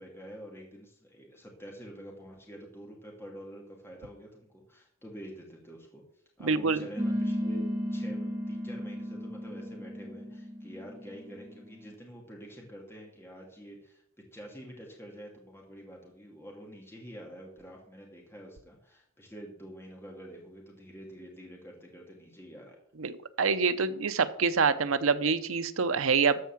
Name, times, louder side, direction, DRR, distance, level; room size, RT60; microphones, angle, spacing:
voice 1, 0.0-6.0 6.4-7.6 7.9-14.0 14.3-22.8, equal, 10° left, -1 dB, 2.3 m, -47 dB
voice 2, 6.4-6.8 23.0-23.1 23.4-26.4, right 5 dB, 90° right, 11 dB, 0.8 m, -26 dB
sound 1, 7.0-11.9, equal, 15° right, 1.7 m, -34 dB
13.5 x 4.6 x 7.4 m, 0.68 s
head